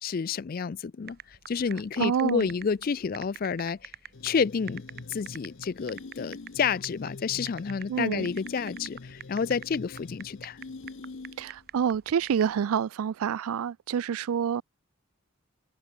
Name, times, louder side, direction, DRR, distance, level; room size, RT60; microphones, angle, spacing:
voice 1, 0.0-3.9 4.2-4.8 5.1-10.6, left 6 dB, 40° left, 0.4 m, -30 dB
sound 1, 1.1-12.6, right 9 dB, 45° right, 1.8 m, -44 dB
voice 2, 2.0-2.4 7.9-8.3 11.4-14.6, right 8 dB, 80° right, 0.4 m, -27 dB
sound 2, 4.1-11.6, left 3 dB, 60° left, 0.7 m, -44 dB
head